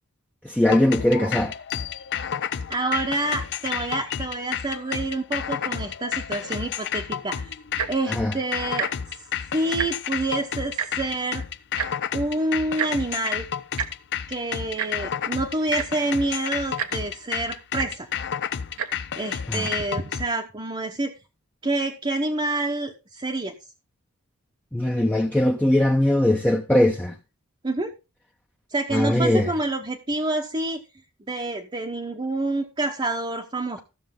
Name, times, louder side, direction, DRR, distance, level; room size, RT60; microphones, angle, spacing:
voice 1, 0.4-1.5 8.1-8.3 19.5-19.7 24.7-27.1 28.9-29.5, left 1 dB, 5° left, 0.8 m, -20 dB
sound 1, 0.7-20.3, left 8 dB, 55° left, 0.6 m, -31 dB
voice 2, 2.7-7.6 7.9-8.9 9.5-11.5 12.1-13.5 14.3-18.1 19.2-21.1 21.6-23.5 27.6-27.9 28.7-30.8 31.3-33.8, right 2 dB, 25° right, 1.0 m, -27 dB
Tick-tock, 7.7-8.0 8.7-8.9 9.2-9.3 9.6-10.2 10.8-10.9 11.8-11.9 12.8-12.9 13.8-13.9 14.8-14.9 15.5-15.6 15.7-16.1 16.8-16.9 17.8-17.9 18.7-18.9 19.6-19.7, right 7 dB, 70° right, 1.1 m, -28 dB
14.5 x 6.5 x 3.8 m
head